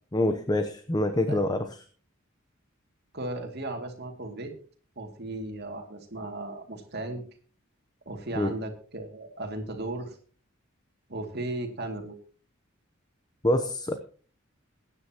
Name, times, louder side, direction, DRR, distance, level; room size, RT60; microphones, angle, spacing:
voice 1, 0.1-1.8 8.3-8.6 13.4-14.0, left 1 dB, 20° left, 8 dB, 0.8 m, -26 dB
voice 2, 3.1-4.5 5.0-7.2 8.1-10.2 11.1-12.2, right 2 dB, 55° right, 3 dB, 2.5 m, -36 dB
22.5 x 9.8 x 3.0 m, 0.40 s
head